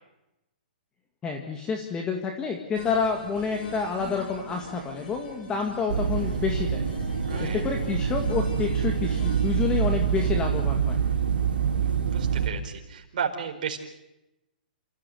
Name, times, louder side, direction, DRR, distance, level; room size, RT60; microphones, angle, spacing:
voice 1, 1.2-6.8 7.4-11.0, left 5 dB, 15° left, 3 dB, 2.0 m, -29 dB
sound 1, 2.7-10.3, left 3 dB, 70° left, 6.6 m, -41 dB
sound 2, 5.9-12.5, right 7 dB, 85° right, 3.1 m, -26 dB
voice 2, 7.2-7.6 11.4-13.8, right 7 dB, 55° right, 2 dB, 4.7 m, -34 dB
29.0 x 15.0 x 7.9 m, 0.91 s
hypercardioid pair, 150°, 5 cm